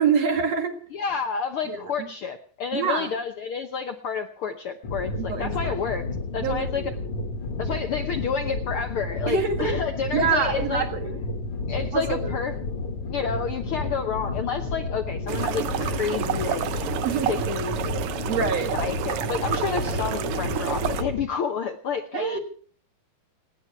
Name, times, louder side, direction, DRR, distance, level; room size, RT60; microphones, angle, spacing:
voice 1, 0.0-0.7 1.6-2.1 2.7-3.1 5.2-5.7 6.4-6.9 7.7-7.8 9.3-9.8 10.1-11.2 11.9-12.3 17.0-17.5 18.2-18.7 22.1-22.4, right 6 dB, 55° right, 6 dB, 3.0 m, -26 dB
voice 2, 0.9-6.0 6.3-6.9 7.6-10.8 11.7-12.5 13.1-16.6 17.2-17.8 18.7-22.4, left 6 dB, 80° left, 7 dB, 1.2 m, -30 dB
sound 1, 4.8-21.2, left 3 dB, 50° left, 2.0 m, -31 dB
sound 2, 15.3-21.0, right 9 dB, 80° right, 1.3 m, -29 dB
29.0 x 10.0 x 4.7 m, 0.44 s
omnidirectional pair, 3.8 m